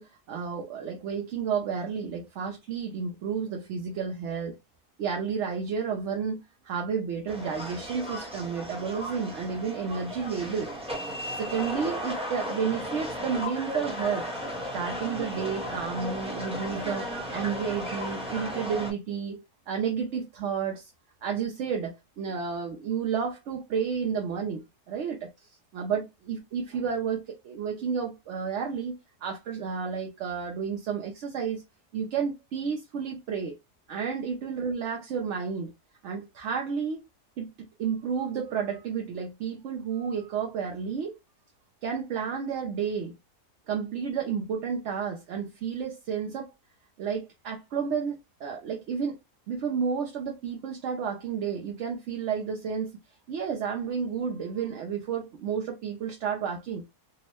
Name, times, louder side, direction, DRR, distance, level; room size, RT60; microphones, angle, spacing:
voice 1, 0.0-4.5 5.0-10.7 11.4-14.3 14.7-20.9 21.2-25.3 25.7-31.6 31.9-33.6 33.9-35.7 36.0-37.0 37.4-41.2 41.8-43.1 43.7-46.5 47.0-49.2 49.5-52.9 53.3-56.8, right 6 dB, 60° right, 0.8 m, -31 dB
sound 1, 7.3-18.9, equal, 5° right, 0.9 m, -35 dB
3.6 x 2.1 x 3.0 m
omnidirectional pair, 1.6 m